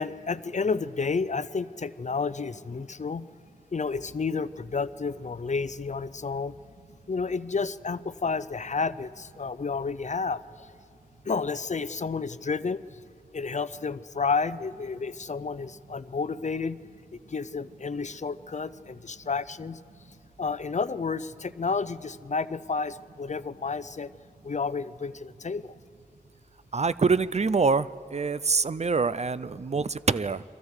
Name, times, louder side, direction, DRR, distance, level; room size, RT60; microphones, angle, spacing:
voice 1, 0.0-3.3 3.7-6.5 7.1-10.7 11.3-12.8 13.3-16.8 17.3-19.8 20.4-24.1 24.4-25.7, left 4 dB, 50° left, 16 dB, 0.5 m, -31 dB
voice 2, 26.7-30.4, right 4 dB, 45° right, 16 dB, 0.5 m, -25 dB
29.5 x 23.5 x 4.9 m, 2.5 s
wide cardioid pair, 70°, 15 cm